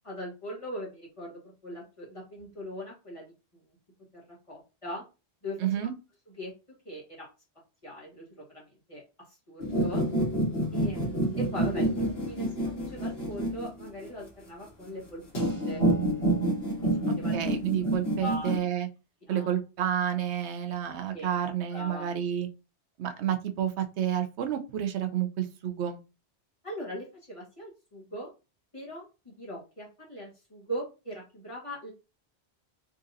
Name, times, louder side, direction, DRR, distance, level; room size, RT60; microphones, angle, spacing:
voice 1, 0.0-3.3 4.1-4.2 4.5-5.0 5.4-5.6 6.4-6.5 6.8-7.3 7.8-8.6 8.9-9.0 9.5-10.0 10.7-11.9 12.2-15.8 17.0-17.3 18.2-18.5 19.2-19.6 21.1-21.3 21.7-22.1 26.6-28.3 28.7-31.9, equal, 30° left, -4 dB, 1.3 m, -40 dB
voice 2, 5.6-5.9 17.1-18.9 19.3-22.5 23.0-26.0, right 10 dB, 85° right, 8 dB, 0.9 m, -30 dB
sound 1, 9.6-14.1 15.3-18.6, right 1 dB, 65° left, 1.7 m, -28 dB
3.9 x 2.6 x 2.5 m, 0.29 s
omnidirectional pair, 1.1 m